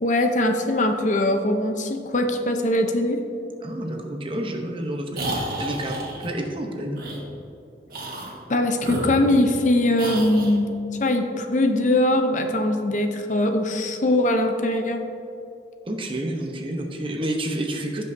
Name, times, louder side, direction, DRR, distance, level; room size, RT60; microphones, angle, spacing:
voice 1, 0.0-3.2 8.5-10.7 11.0-15.0, left 1 dB, 45° left, 5 dB, 0.6 m, -21 dB
voice 2, 3.6-7.0 15.8-18.0, right 1 dB, 30° right, 3 dB, 0.8 m, -29 dB
sound 1, 5.1-6.3 6.9-7.2 7.9-8.4 8.8-9.6 10.0-10.6, right 1 dB, 55° right, 1.6 m, -31 dB
16.5 x 5.5 x 2.7 m, 2.7 s
head